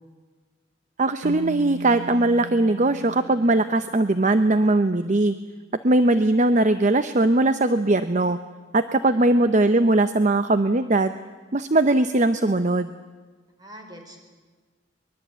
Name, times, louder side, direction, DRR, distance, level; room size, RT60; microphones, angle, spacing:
voice 1, 1.0-5.3 5.8-8.4 8.7-11.1 11.5-12.9, right 2 dB, 40° right, 10 dB, 0.7 m, -20 dB
Keyboard (musical), 1.2-4.5, right 3 dB, 90° right, 1.0 m, -38 dB
voice 2, 13.6-14.2, equal, 20° right, 3 dB, 4.3 m, -44 dB
23.5 x 21.5 x 8.3 m, 1.4 s
head